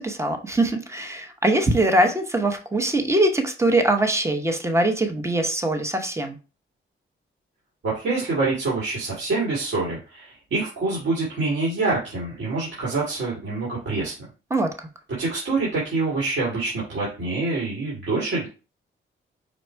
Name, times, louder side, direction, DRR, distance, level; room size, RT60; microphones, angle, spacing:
voice 1, 0.0-6.4 14.5-14.9, right 1 dB, 15° right, 0.8 m, -22 dB
voice 2, 7.8-14.1 15.2-18.5, right 3 dB, 65° right, 2.4 m, -26 dB
5.2 x 2.3 x 4.5 m
cardioid pair, 85°, 21 cm